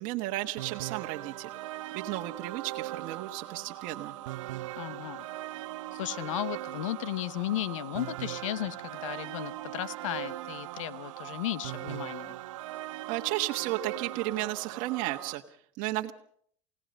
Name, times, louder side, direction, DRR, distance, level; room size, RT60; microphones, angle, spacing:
voice 1, 0.0-1.5 1.9-4.1 13.1-16.1, right 16 dB, 60° right, 3 dB, 1.3 m, -33 dB
sound 1, 0.6-15.3, right 16 dB, 85° right, 0.8 m, -39 dB
voice 2, 4.8-5.3 5.9-12.3, left 14 dB, 90° left, 17 dB, 0.9 m, -35 dB
29.0 x 17.0 x 5.4 m, 0.62 s
supercardioid pair, 110°, 16 cm